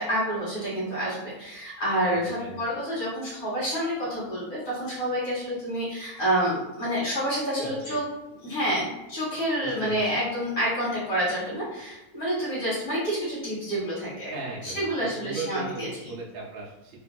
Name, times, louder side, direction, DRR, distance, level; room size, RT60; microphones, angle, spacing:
voice 1, 0.0-8.0 8.4-14.3 14.6-15.9, equal, 75° left, -10 dB, 2.1 m, -28 dB
voice 2, 2.0-2.6 7.6-8.0 9.6-10.0 14.3-15.8 16.1-17.0, right 3 dB, 60° right, -4 dB, 0.6 m, -37 dB
3.7 x 2.6 x 2.2 m, 0.95 s
omnidirectional pair, 1.6 m